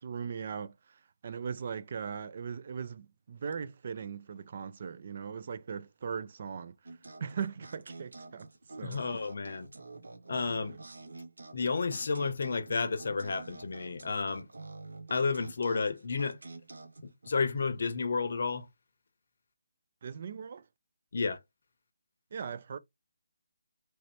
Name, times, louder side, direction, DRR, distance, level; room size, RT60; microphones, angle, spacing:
voice 1, 0.0-8.5 8.8-9.2 10.7-10.8 20.0-20.7 22.3-22.8, right 6 dB, 45° right, 0.3 m, -39 dB
sound 1, 6.9-17.3, right 3 dB, 85° right, 0.7 m, -48 dB
voice 2, 8.8-9.7 10.3-10.8 11.5-14.5 15.1-16.4 17.0-18.7 21.1-21.4, left 4 dB, 60° left, 0.6 m, -31 dB
3.1 x 2.6 x 3.2 m
hypercardioid pair, 165°, 0 cm